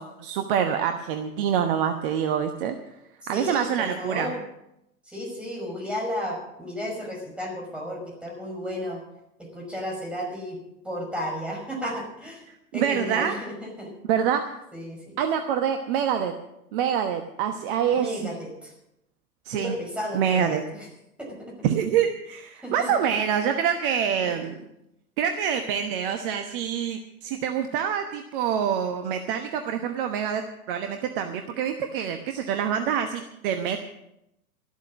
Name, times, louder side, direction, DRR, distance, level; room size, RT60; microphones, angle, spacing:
voice 1, 0.0-2.8 3.3-4.3 12.5-13.3 14.1-14.4 15.2-16.3 16.7-18.4 19.4-19.7 20.1-20.6 21.6-24.6 25.2-33.8, right 8 dB, 35° right, 7 dB, 1.1 m, -26 dB
voice 2, 3.3-4.4 5.1-9.0 9.4-10.6 10.8-12.4 12.7-13.9 14.7-15.2 17.9-18.7 19.5-20.9 21.2-21.5 22.6-22.9 24.2-24.3, equal, ahead, -2 dB, 5.5 m, -33 dB
13.5 x 12.5 x 6.2 m, 0.84 s
figure-of-eight pair, 100°, 45 cm